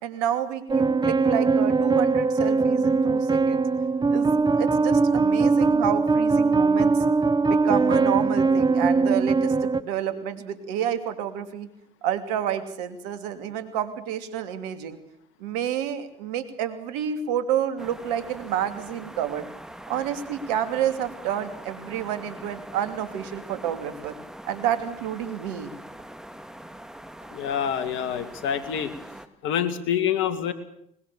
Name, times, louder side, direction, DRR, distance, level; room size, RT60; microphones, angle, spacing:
voice 1, 0.0-3.6 4.1-7.0 7.5-11.7 12.0-15.0 15.4-19.4 19.9-24.1 24.4-25.7, right 9 dB, 85° right, 10 dB, 2.8 m, -29 dB
sound 1, 0.7-9.8, right 4 dB, 20° right, 1.4 m, -21 dB
sound 2, 17.8-29.3, right 1 dB, 5° right, 2.3 m, -43 dB
voice 2, 27.3-28.9 29.4-30.5, left 9 dB, 70° left, 10 dB, 2.6 m, -26 dB
23.0 x 21.0 x 6.8 m, 0.71 s
hypercardioid pair, 70°, 21 cm